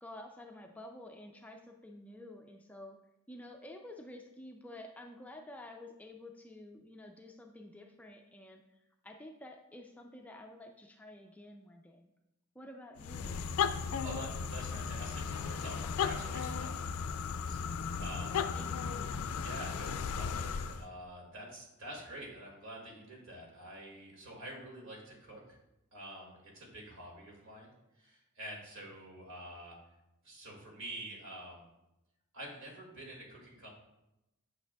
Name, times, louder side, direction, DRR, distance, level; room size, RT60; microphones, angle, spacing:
voice 1, 0.0-3.0 3.3-12.1 12.6-13.4 18.5-19.2, left 1 dB, 5° left, 2 dB, 0.3 m, -50 dB
sound 1, 13.0-20.9, left 6 dB, 85° left, 0.4 m, -35 dB
voice 2, 14.0-17.6 18.0-18.8 19.4-25.6 25.9-29.8 30.2-31.7 32.3-33.7, right 1 dB, 65° right, -2 dB, 2.0 m, -47 dB
8.8 x 5.9 x 2.3 m, 0.92 s
head